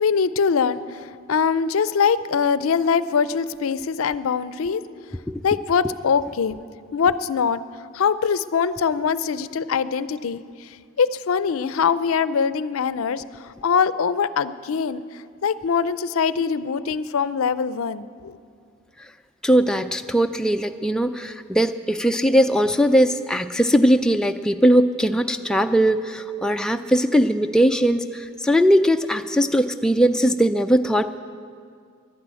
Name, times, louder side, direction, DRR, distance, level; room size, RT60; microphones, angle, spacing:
voice 1, 0.0-5.2 5.4-6.6 6.9-7.6 7.9-18.3, left 6 dB, 85° left, 15 dB, 0.5 m, -23 dB
voice 2, 5.3-5.9 19.4-31.2, equal, 5° left, 5 dB, 0.3 m, -20 dB
11.5 x 10.5 x 8.8 m, 2.2 s
head